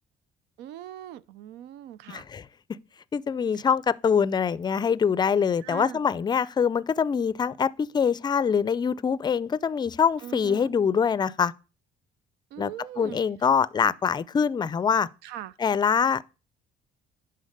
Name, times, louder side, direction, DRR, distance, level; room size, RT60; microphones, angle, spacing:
voice 1, 0.6-2.3 3.5-3.6 5.6-6.0 10.2-10.7 12.5-13.2 15.2-15.6, right 12 dB, 85° right, 0.5 m, -40 dB
voice 2, 2.1-2.5 3.1-11.5 12.6-12.7 13.0-15.1 15.6-16.3, left 6 dB, 25° left, 0.4 m, -24 dB
10.5 x 4.0 x 6.6 m
cardioid pair, 110°, 17 cm